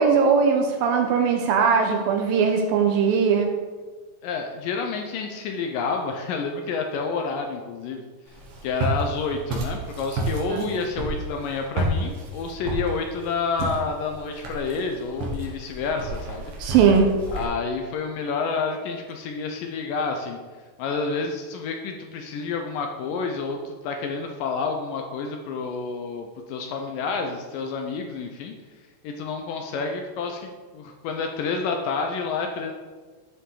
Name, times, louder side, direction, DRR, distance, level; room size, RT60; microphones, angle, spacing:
voice 1, 0.0-3.5 10.5-10.7 16.6-17.1, right 6 dB, 75° right, 4 dB, 2.2 m, -20 dB
voice 2, 4.2-8.0 8.6-16.5 17.3-20.4 20.8-28.5 29.0-32.7, left 4 dB, 80° left, 4 dB, 2.0 m, -29 dB
Walk footsteps, 8.3-17.5, right 2 dB, 60° right, 3.1 m, -31 dB
12.0 x 6.9 x 3.8 m, 1.4 s
omnidirectional pair, 4.8 m